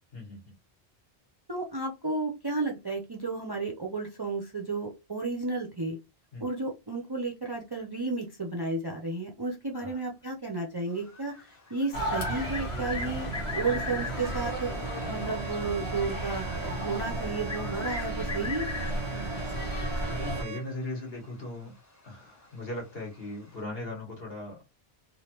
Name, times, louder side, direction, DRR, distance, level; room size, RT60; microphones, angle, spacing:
voice 1, 0.1-0.5 6.3-6.4 9.7-10.1 20.1-21.7 22.0-24.6, left 2 dB, 65° left, 1.5 m, -38 dB
voice 2, 1.5-6.0 6.4-18.7, right 3 dB, 35° right, 0.4 m, -33 dB
sound 1, 10.9-14.3 16.7-16.8 17.5-19.2 20.8-20.9 21.3-21.4 23.1-23.2, left 3 dB, 20° left, 0.5 m, -38 dB
sound 2, 11.9-20.4, right 1 dB, 85° left, 1.3 m, -33 dB
Bowed string instrument, 13.9-20.7, right 8 dB, 90° right, 0.8 m, -44 dB
3.2 x 2.3 x 2.9 m
omnidirectional pair, 1.1 m